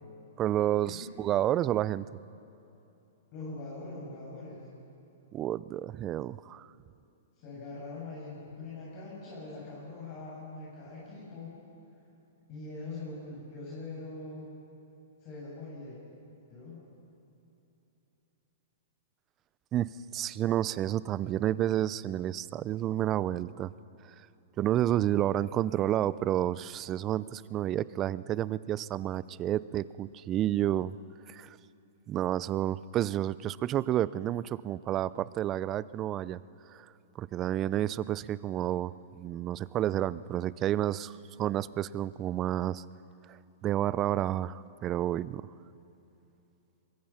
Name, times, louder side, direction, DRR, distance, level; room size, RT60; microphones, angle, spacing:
voice 1, 0.4-2.1 5.3-6.7 19.7-23.7 24.6-31.0 31.3-31.6 32.1-36.4 36.7-36.9 37.2-42.8 43.3-43.4 43.6-45.4, right 12 dB, 30° right, 19 dB, 0.5 m, -30 dB
voice 2, 3.3-4.6 7.4-11.5 12.5-14.5 15.2-16.0 16.5-16.9, left 3 dB, 45° left, -6 dB, 7.1 m, -42 dB
23.0 x 22.0 x 5.8 m, 3.0 s
hypercardioid pair, 125°, 0 cm